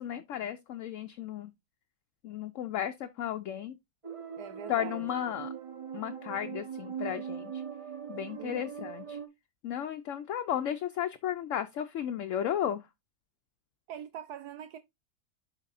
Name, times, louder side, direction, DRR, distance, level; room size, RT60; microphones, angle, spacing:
voice 1, 0.0-1.5 2.2-3.8 4.7-5.5 5.9-7.6 8.1-9.2 9.6-12.9, left 10 dB, 65° left, 0.8 m, -34 dB
sound 1, 4.0-9.3, right 7 dB, 25° right, 0.9 m, -41 dB
voice 2, 4.4-5.0 8.4-8.6 13.9-14.8, right 9 dB, 75° right, 1.1 m, -43 dB
12.0 x 4.1 x 2.4 m
omnidirectional pair, 1.8 m